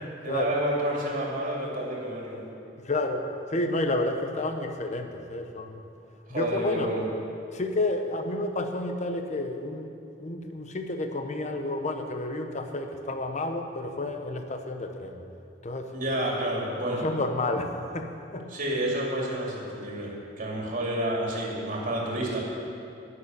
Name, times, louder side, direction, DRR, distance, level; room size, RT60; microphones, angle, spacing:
voice 1, 0.0-2.4 6.3-7.0 15.9-17.1 18.5-22.4, right 1 dB, 45° right, -3 dB, 2.6 m, -30 dB
voice 2, 2.8-5.8 6.3-6.9 7.5-9.9 10.2-15.2 15.6-15.9 16.9-18.5, left 2 dB, 40° left, 5 dB, 0.8 m, -30 dB
10.5 x 6.8 x 9.1 m, 2.6 s
head